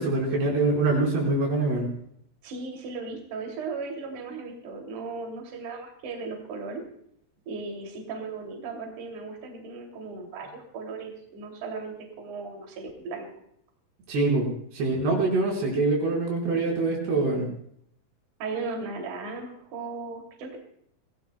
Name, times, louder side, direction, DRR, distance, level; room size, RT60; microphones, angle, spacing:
voice 1, 0.0-1.9 14.1-17.5, right 2 dB, 90° right, -1 dB, 6.6 m, -24 dB
voice 2, 2.4-6.8 7.5-13.3 18.4-20.6, right 4 dB, 55° right, 1 dB, 3.9 m, -36 dB
26.0 x 17.0 x 2.2 m, 0.69 s
omnidirectional pair, 4.6 m